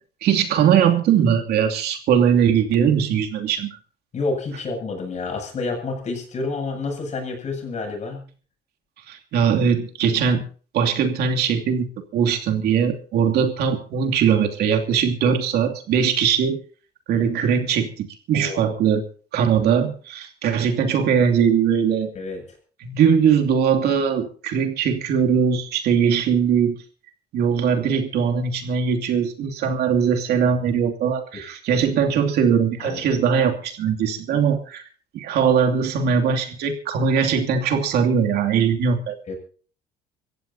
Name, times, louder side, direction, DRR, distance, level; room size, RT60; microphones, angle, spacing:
voice 1, 0.2-3.7 9.1-10.4 10.7-11.9 12.1-16.6 17.1-19.1 19.3-22.1 22.8-26.8 27.3-34.8 35.1-39.1, right 7 dB, 70° right, 3 dB, 2.7 m, -20 dB
voice 2, 4.1-8.3 18.3-18.7 22.1-22.4 32.8-33.2 39.3-39.4, left 3 dB, 45° left, 3 dB, 7.5 m, -29 dB
26.0 x 15.0 x 2.8 m, 0.40 s
cardioid pair, 110°, 17 cm